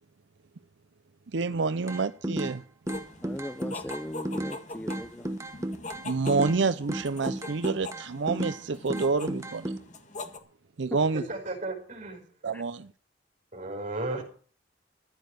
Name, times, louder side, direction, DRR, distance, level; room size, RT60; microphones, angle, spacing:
voice 1, 1.3-2.6 6.0-9.7 10.8-11.2 12.4-12.9, right 4 dB, 80° right, 0.6 m, -28 dB
sound 1, 1.9-2.6 2.9-4.6 4.9-6.6 6.9-8.6 8.9-9.8, right 1 dB, 15° right, 1.2 m, -33 dB
sound 2, 2.9-10.4, left 2 dB, 40° left, 1.8 m, -42 dB
voice 2, 3.2-5.3 12.5-12.6, left 1 dB, 10° left, 0.7 m, -39 dB
voice 3, 11.1-12.2 13.5-14.2, right 2 dB, 45° right, 5.4 m, -34 dB
14.5 x 10.5 x 6.4 m
head